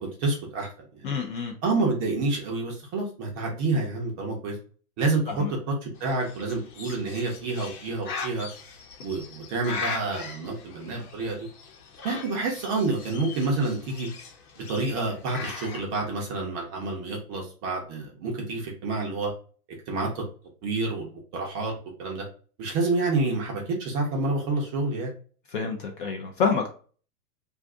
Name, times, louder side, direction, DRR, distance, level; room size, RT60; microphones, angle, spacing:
voice 1, 0.0-1.1 1.6-4.6 5.0-8.5 9.0-11.5 12.0-14.1 14.6-19.3 19.9-20.2 20.6-22.3 22.6-25.1, right 3 dB, 20° right, -1 dB, 0.5 m, -28 dB
voice 2, 1.0-1.5 5.3-5.5 25.5-26.7, left 5 dB, 35° left, 2 dB, 0.4 m, -27 dB
Bird, 6.0-15.8, left 5 dB, 65° left, 1.0 m, -40 dB
2.5 x 2.4 x 3.6 m, 0.40 s
hypercardioid pair, 135°, 47 cm